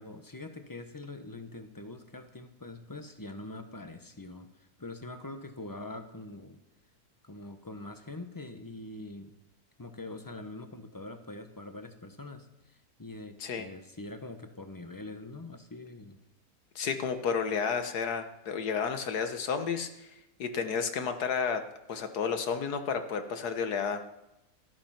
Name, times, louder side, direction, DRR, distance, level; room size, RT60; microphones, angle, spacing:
voice 1, 0.0-6.6 7.2-9.4 9.8-16.2, left 2 dB, 15° left, 7 dB, 1.0 m, -44 dB
voice 2, 16.7-20.1 20.4-24.0, left 6 dB, 80° left, 8 dB, 1.8 m, -31 dB
14.0 x 13.5 x 5.9 m, 0.92 s
omnidirectional pair, 1.6 m